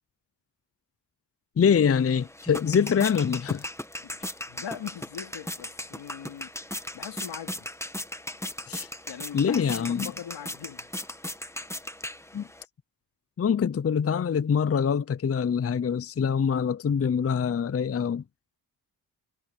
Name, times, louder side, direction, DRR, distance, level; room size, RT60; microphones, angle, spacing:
voice 1, 1.6-3.7 8.7-8.9 9.3-10.1 12.3-12.5 13.4-18.2, left 7 dB, 35° left, 0.6 m, -24 dB
sound 1, 1.9-12.7, left 1 dB, 5° left, 1.3 m, -38 dB
voice 2, 4.0-6.5 6.9-7.7 9.1-10.9, left 8 dB, 85° left, 2.6 m, -41 dB
cardioid pair, 65°, 42 cm